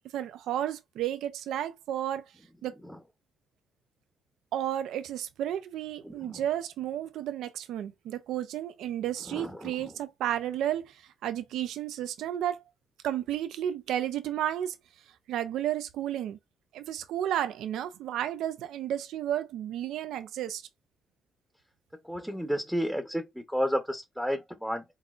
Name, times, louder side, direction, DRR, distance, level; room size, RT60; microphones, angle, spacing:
voice 1, 0.0-2.2 2.6-2.8 4.5-12.6 13.0-14.8 15.3-16.4 16.7-20.6, right 11 dB, 80° right, 0.5 m, -32 dB
voice 2, 6.0-6.4 9.3-9.7 22.1-24.8, equal, ahead, 0.8 m, -31 dB
4.0 x 3.7 x 2.4 m
cardioid pair, 90°, 0 cm